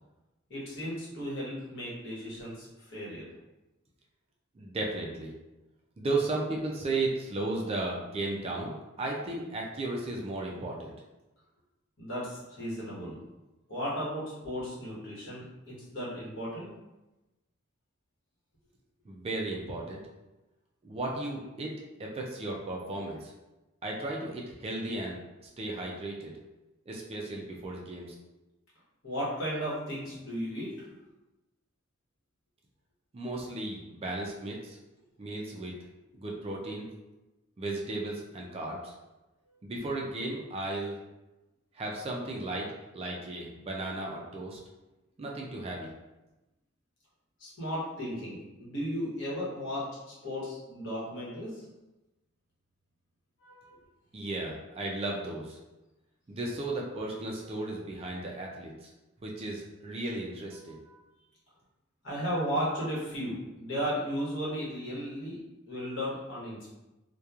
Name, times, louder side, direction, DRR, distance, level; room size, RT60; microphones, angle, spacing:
voice 1, 0.5-3.2 12.0-13.2 13.7-16.7 29.0-30.9 47.4-51.6 53.4-53.8 62.0-65.4 65.7-66.7, equal, 60° left, -7 dB, 1.0 m, -35 dB
voice 2, 4.6-5.3 6.0-10.9 19.1-20.0 20.8-21.7 22.0-23.3 23.8-25.2 25.6-26.3 26.9-28.1 33.1-34.8 35.2-35.7 36.1-36.9 37.6-38.9 39.6-41.0 41.7-44.6 45.2-45.9 54.1-55.6 56.3-58.9 59.2-60.8, right 2 dB, 25° right, -1 dB, 0.3 m, -35 dB
2.9 x 2.2 x 2.3 m, 1.0 s
head